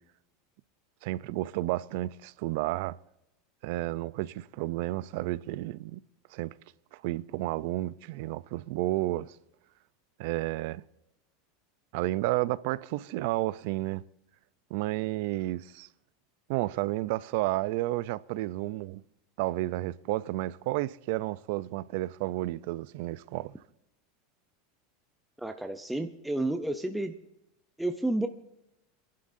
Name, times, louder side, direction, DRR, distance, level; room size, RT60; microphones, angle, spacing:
voice 1, 1.0-3.0 3.6-6.0 6.3-6.5 6.9-9.4 10.2-10.8 11.9-14.0 14.7-15.9 16.5-19.0 19.4-23.5, right 17 dB, 55° right, 0.4 m, -31 dB
voice 2, 25.4-27.1 27.8-28.3, right 1 dB, 5° right, 0.6 m, -31 dB
30.0 x 11.5 x 2.6 m
supercardioid pair, 165°, 0 cm